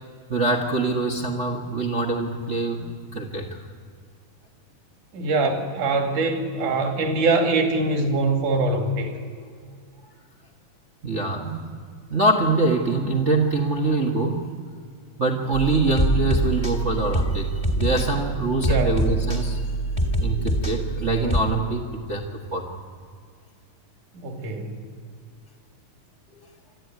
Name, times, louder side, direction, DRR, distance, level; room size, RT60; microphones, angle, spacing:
voice 1, 0.3-3.6 11.0-11.7 12.1-14.4 15.2-17.5 17.8-19.6 20.2-22.6, right 2 dB, 50° right, 0 dB, 0.8 m, -24 dB
voice 2, 5.1-9.1 18.6-19.0 24.2-24.8, right 3 dB, 65° right, 4 dB, 3.7 m, -23 dB
sound 1, 15.5-21.4, right 1 dB, 15° left, 1.5 m, -25 dB
26.0 x 13.0 x 9.5 m, 2.1 s
omnidirectional pair, 3.9 m